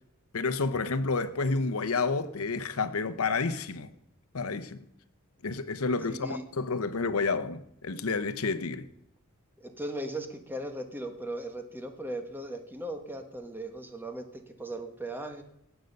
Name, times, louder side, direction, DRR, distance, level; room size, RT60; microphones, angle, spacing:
voice 1, 0.3-3.9 4.3-4.8 5.4-8.9, left 4 dB, 70° left, 0.8 m, -30 dB
voice 2, 6.1-6.4 9.6-14.3 14.6-15.4, right 1 dB, 10° right, 1.2 m, -37 dB
18.0 x 8.0 x 5.3 m
head